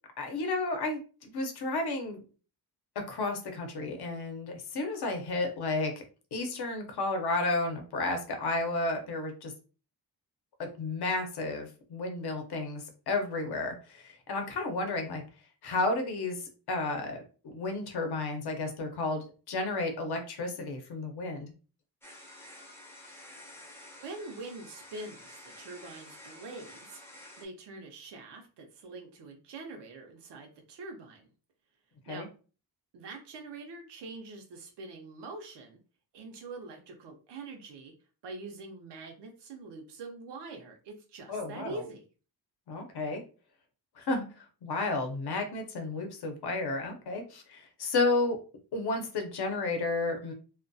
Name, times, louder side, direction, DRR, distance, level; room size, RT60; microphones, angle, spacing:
voice 1, 0.2-2.2 3.0-5.9 6.3-9.5 10.6-15.2 15.6-16.4 16.7-21.5 32.1-32.3 41.3-41.8 42.7-43.2 44.0-48.4 48.7-50.3, left 2 dB, 70° left, 5 dB, 0.7 m, -32 dB
sound 1, 22.0-27.5, left 1 dB, 5° left, 0.4 m, -50 dB
voice 2, 24.0-31.3 32.1-32.3 32.9-35.8 36.1-37.9 38.2-42.0, right 3 dB, 80° right, 3 dB, 0.6 m, -44 dB
2.2 x 2.2 x 2.5 m, 0.36 s
wide cardioid pair, 170°, 41 cm